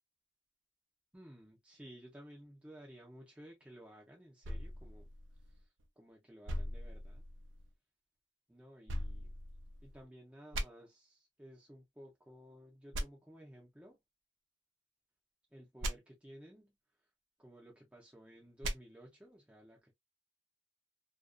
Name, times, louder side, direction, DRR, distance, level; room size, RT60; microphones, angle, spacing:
voice 1, 1.1-5.1 5.5-7.2 8.5-9.4 9.8-14.0 15.5-16.7 17.4-19.9, equal, 5° right, 0.5 m, -56 dB
sound 1, 4.4-5.9 6.5-7.7 8.9-10.0 10.5-10.6 12.9-13.0 15.8-15.9 18.6-18.8, right 1 dB, 75° right, 0.5 m, -40 dB
2.4 x 2.3 x 2.3 m
head